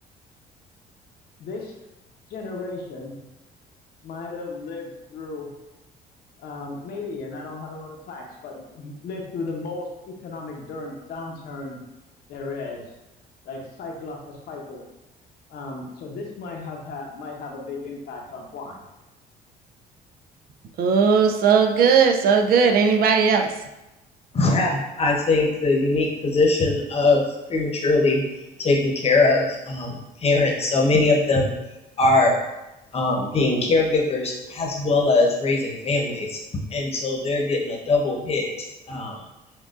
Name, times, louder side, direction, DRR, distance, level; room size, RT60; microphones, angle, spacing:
voice 1, 1.4-1.7 2.3-3.2 4.0-5.5 6.4-11.8 12.3-12.8 13.4-14.8 15.5-18.8, left 3 dB, 70° left, 0 dB, 0.9 m, -35 dB
voice 2, 20.8-23.5, right 6 dB, 60° right, 4 dB, 0.5 m, -17 dB
voice 3, 24.3-28.2 28.6-31.5 32.0-32.4 32.9-36.4 36.7-38.5 38.9-39.2, left 3 dB, 35° left, -1 dB, 0.9 m, -21 dB
6.2 x 2.4 x 2.5 m, 0.99 s
cardioid pair, 110°, 17 cm